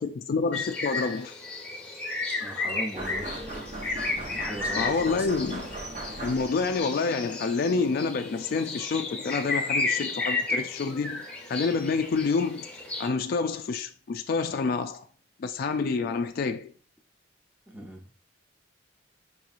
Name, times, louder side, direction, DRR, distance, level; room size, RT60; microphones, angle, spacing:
voice 1, 0.0-1.3 4.7-5.7 6.2-11.2 11.5-12.7 13.0-15.1 15.4-16.7, left 4 dB, 50° left, 0.3 m, -28 dB
sound 1, 0.5-13.1, left 3 dB, 10° left, 1.1 m, -33 dB
voice 2, 2.4-3.3 4.1-5.6 17.7-18.1, right 1 dB, 10° right, 0.8 m, -39 dB
sound 2, 3.0-6.8, right 2 dB, 40° right, 0.8 m, -38 dB
5.4 x 3.0 x 2.4 m
head